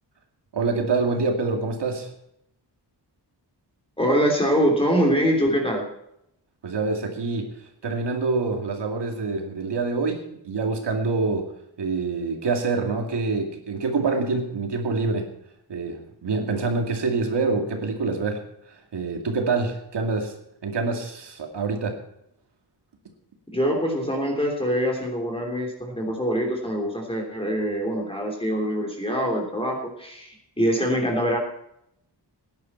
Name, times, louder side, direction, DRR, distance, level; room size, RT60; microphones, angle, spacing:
voice 1, 0.5-2.1 6.6-7.5 7.8-11.5 11.8-15.3 15.7-20.3 20.6-22.0, right 3 dB, 75° right, 3 dB, 2.4 m, -26 dB
voice 2, 4.0-5.8 23.5-31.4, equal, 15° left, 0 dB, 3.3 m, -24 dB
17.5 x 10.5 x 4.5 m, 0.77 s
wide cardioid pair, 175°, 42 cm